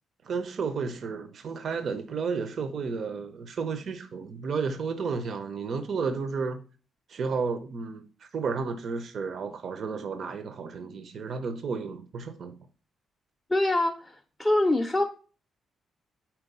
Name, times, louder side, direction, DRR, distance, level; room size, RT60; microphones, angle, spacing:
voice 1, 0.2-6.6 7.1-12.6, right 5 dB, 45° right, 0.6 m, -32 dB
voice 2, 13.5-15.0, left 1 dB, 10° left, 0.6 m, -24 dB
4.5 x 4.3 x 5.3 m
cardioid pair, 160°, 0 cm